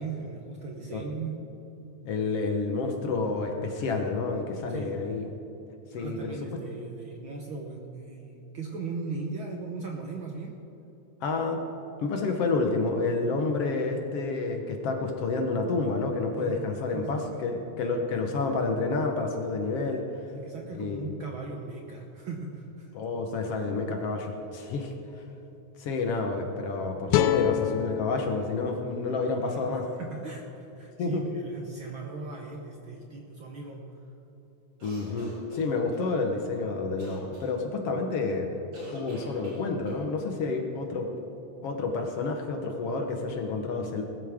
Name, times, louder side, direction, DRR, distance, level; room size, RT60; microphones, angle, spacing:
voice 1, 0.0-1.4 4.7-4.9 5.9-10.6 16.4-17.6 18.1-18.2 20.3-23.0 29.4-33.8, right 4 dB, 60° right, 0 dB, 1.4 m, -38 dB
voice 2, 2.0-5.3 5.9-6.3 11.2-11.6 12.0-20.0 20.8-21.1 22.9-24.9 25.8-29.8 31.0-31.2 34.8-38.5 38.9-41.1 41.6-44.0, left 3 dB, 60° left, 3 dB, 1.9 m, -29 dB
sound 1, 27.1-30.3, left 11 dB, 80° left, 2.0 m, -29 dB
sound 2, 34.8-36.0 37.0-37.5 38.7-40.0, right 1 dB, 80° right, 4.9 m, -44 dB
20.5 x 12.5 x 3.6 m, 3.0 s
omnidirectional pair, 3.3 m